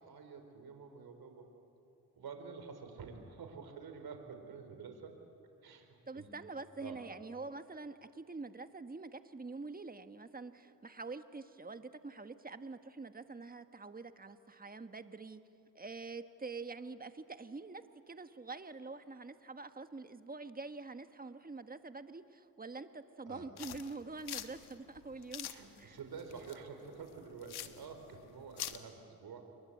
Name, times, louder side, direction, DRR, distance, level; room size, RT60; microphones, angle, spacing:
voice 1, 0.0-1.5 2.1-5.1 5.6-6.3 6.8-7.0 23.2-23.5 25.5-29.4, right 5 dB, 70° right, 6 dB, 4.2 m, -49 dB
voice 2, 6.1-15.4 15.7-25.5 25.8-26.0, right 3 dB, 25° right, 9 dB, 1.5 m, -46 dB
sound 1, 23.6-28.8, left 11 dB, 85° left, 1.3 m, -46 dB
28.5 x 23.0 x 8.6 m, 2.7 s
cardioid pair, 70°, 38 cm